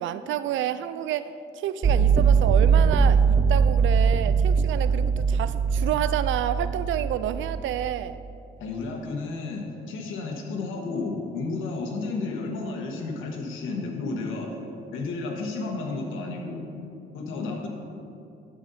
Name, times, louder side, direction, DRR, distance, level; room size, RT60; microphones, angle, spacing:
voice 1, 0.0-8.2, right 11 dB, 75° right, 13 dB, 0.4 m, -29 dB
sound 1, 1.8-7.8, right 6 dB, 25° right, 0.7 m, -21 dB
voice 2, 8.6-14.5 14.9-16.7 17.1-17.7, left 3 dB, 85° left, 1 dB, 1.4 m, -32 dB
11.5 x 9.0 x 2.7 m, 2.6 s
cardioid pair, 90°, 20 cm